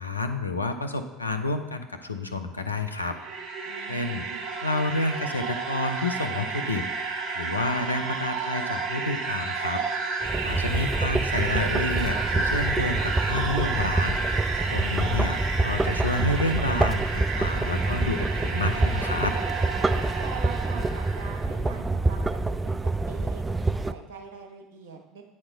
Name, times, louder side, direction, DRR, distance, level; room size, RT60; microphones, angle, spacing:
voice 1, 0.0-3.2 3.9-4.2 4.6-6.9 7.3-9.8 10.4-14.2 14.7-19.3, left 2 dB, 85° left, 6 dB, 0.5 m, -29 dB
sound 1, 2.8-21.5, right 4 dB, 40° right, 1.3 m, -31 dB
voice 2, 3.6-4.5 10.5-10.9 20.2-25.2, right 6 dB, 60° right, 3 dB, 1.1 m, -43 dB
sound 2, 10.2-23.9, right 2 dB, 15° right, 0.3 m, -27 dB
8.7 x 4.3 x 5.4 m, 1.0 s
figure-of-eight pair, 65°, 0 cm